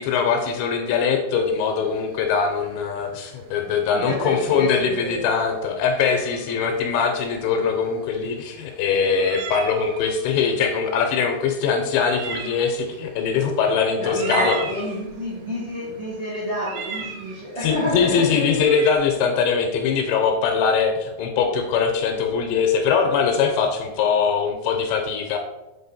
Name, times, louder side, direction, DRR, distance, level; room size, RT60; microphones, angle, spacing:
voice 1, 0.0-14.6 17.6-25.4, left 6 dB, 80° left, 4 dB, 2.9 m, -22 dB
sound 1, 1.4-18.9, right 6 dB, 85° right, 2.3 m, -37 dB
voice 2, 3.9-5.3 14.0-18.6, equal, 50° right, -8 dB, 1.8 m, -29 dB
7.5 x 4.4 x 4.2 m, 1.0 s
omnidirectional pair, 5.4 m